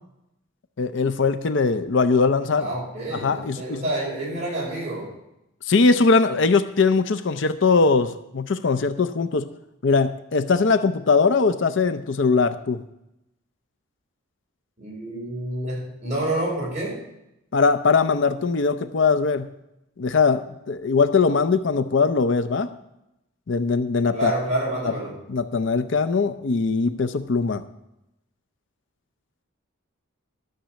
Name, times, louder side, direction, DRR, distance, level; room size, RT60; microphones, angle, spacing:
voice 1, 0.8-2.7 3.1-3.8 5.7-9.5 9.8-12.8 17.5-19.5 20.0-22.7 23.5-24.3 24.8-24.9 25.3-27.6, left 4 dB, 60° left, 11 dB, 0.5 m, -21 dB
voice 2, 2.6-5.1 14.8-17.0 24.1-25.1, right 1 dB, 35° right, -4 dB, 5.3 m, -28 dB
13.0 x 6.8 x 6.2 m, 0.86 s
head